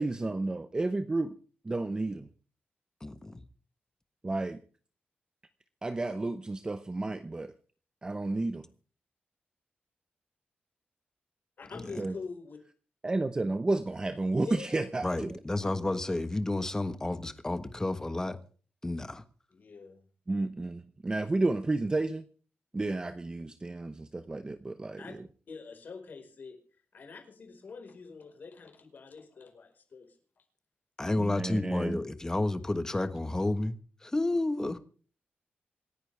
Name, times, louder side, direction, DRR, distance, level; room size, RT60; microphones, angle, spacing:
voice 1, 0.0-1.3 1.6-2.3 4.2-4.6 5.8-7.5 8.0-8.7 12.0-12.2 13.0-15.4 20.3-22.3 22.7-25.0 31.2-32.0, right 2 dB, 20° right, 0.9 m, -31 dB
voice 2, 3.0-3.4 11.7-12.0 15.0-18.4 18.8-19.2 31.0-34.8, left 2 dB, 15° left, 1.4 m, -31 dB
voice 3, 11.6-12.6 14.4-14.7 19.5-20.0 25.0-25.2 25.5-26.6 26.9-30.4, left 4 dB, 55° left, 4.8 m, -45 dB
27.0 x 10.5 x 3.4 m
wide cardioid pair, 150°, 4 cm